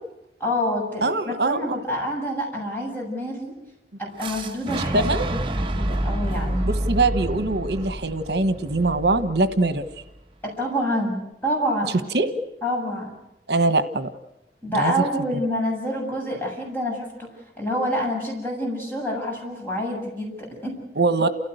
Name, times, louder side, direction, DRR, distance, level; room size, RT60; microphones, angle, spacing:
voice 1, 0.4-3.5 4.0-5.4 5.7-6.7 10.4-12.1 12.6-13.1 14.6-17.3 17.6-20.8, equal, 10° left, -1 dB, 7.6 m, -27 dB
voice 2, 1.0-1.8 4.9-5.3 6.6-10.0 12.1-12.3 13.5-14.1 14.7-14.9 21.0-21.3, right 2 dB, 70° right, 10 dB, 1.3 m, -22 dB
Fire / Explosion, 4.2-10.1, right 1 dB, 30° right, 1.1 m, -28 dB
29.0 x 16.5 x 8.1 m, 0.93 s
head